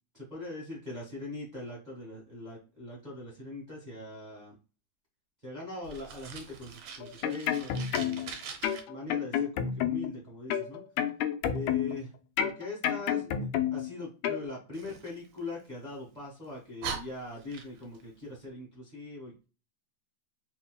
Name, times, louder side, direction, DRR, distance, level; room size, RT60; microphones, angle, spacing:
voice 1, 0.1-4.6 5.4-8.3 8.9-10.8 11.5-12.1 12.4-19.4, left 2 dB, 25° right, -4 dB, 1.0 m, -41 dB
Fire, 5.8-8.8 14.7-16.0 16.4-16.5 16.8-18.0, right 6 dB, 70° right, 1.7 m, -42 dB
sound 1, 7.0-8.3 8.6-10.2 10.5-12.0 12.4-13.9 14.2-14.4, left 9 dB, 85° left, 1.9 m, -30 dB
4.4 x 4.2 x 2.2 m, 0.32 s
omnidirectional pair, 3.3 m